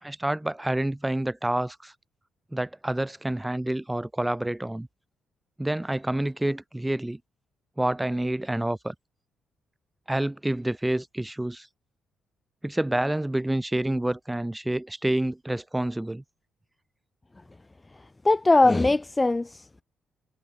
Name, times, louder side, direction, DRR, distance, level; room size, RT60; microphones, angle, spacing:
voice 1, 0.0-1.9 2.5-4.9 5.6-7.2 7.8-8.9 10.1-11.7 12.6-16.2, right 1 dB, 10° right, 1.3 m, -28 dB
voice 2, 18.2-19.8, left 2 dB, 20° left, 0.4 m, -21 dB
cardioid pair, 90°, 0 cm